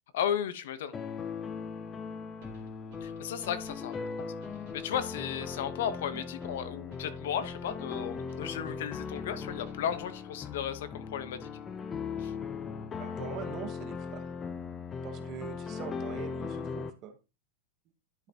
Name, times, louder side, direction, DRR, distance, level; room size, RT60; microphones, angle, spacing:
voice 1, 0.1-0.9 3.0-4.3 4.7-11.5 12.2-12.3, left 9 dB, 60° left, 12 dB, 1.0 m, -35 dB
sound 1, 0.9-16.9, left 5 dB, 15° left, 0.5 m, -39 dB
sound 2, 2.4-10.3, right 4 dB, 55° right, 2.8 m, -57 dB
voice 2, 13.0-14.3 15.0-17.2, right 9 dB, 25° right, 9 dB, 0.9 m, -43 dB
11.0 x 5.8 x 2.9 m, 0.28 s
supercardioid pair, 180°, 0 cm